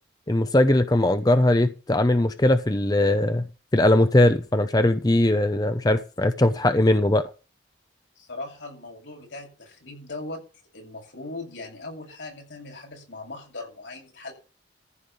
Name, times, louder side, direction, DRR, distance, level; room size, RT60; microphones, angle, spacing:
voice 1, 0.3-3.5 3.7-7.2, left 1 dB, 20° left, 0.7 m, -20 dB
voice 2, 8.2-10.4 10.7-14.3, left 2 dB, 85° left, 7.2 m, -39 dB
14.5 x 5.2 x 9.4 m
head